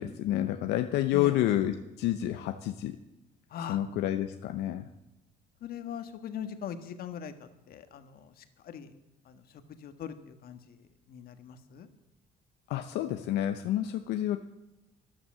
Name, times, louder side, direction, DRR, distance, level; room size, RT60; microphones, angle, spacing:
voice 1, 0.0-3.0 3.7-4.9 12.7-14.4, left 13 dB, 85° left, 7 dB, 0.8 m, -29 dB
voice 2, 3.5-3.8 5.6-8.9 9.2-11.9, left 8 dB, 60° left, 9 dB, 1.6 m, -41 dB
13.0 x 11.5 x 7.6 m, 0.93 s
cardioid pair, 110°, 17 cm